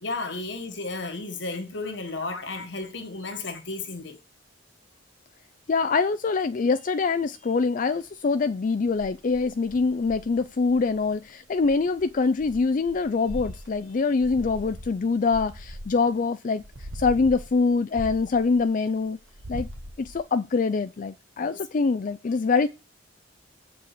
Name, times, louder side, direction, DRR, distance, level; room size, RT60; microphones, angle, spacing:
voice 1, 0.0-4.2 21.5-21.6, left 3 dB, 70° left, 1.5 m, -33 dB
voice 2, 5.7-19.2 19.5-19.7 20.0-22.7, left 4 dB, 45° left, 0.4 m, -24 dB
sound 1, 8.9-11.1 11.6-16.2 16.6-18.9 19.2-20.2, equal, 85° right, 1.3 m, -40 dB
7.6 x 4.8 x 6.7 m
head